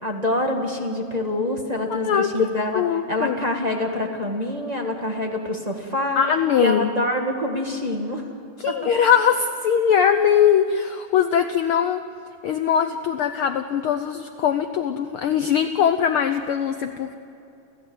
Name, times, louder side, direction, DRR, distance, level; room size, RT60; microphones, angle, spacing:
voice 1, 0.0-2.8 3.1-6.2 6.6-8.3, left 1 dB, 20° right, 1 dB, 1.3 m, -26 dB
voice 2, 1.9-2.5 2.7-3.4 6.2-6.9 8.6-12.0 12.4-17.1, left 8 dB, 90° left, 8 dB, 1.2 m, -21 dB
29.5 x 15.0 x 8.1 m, 2.6 s
omnidirectional pair, 3.4 m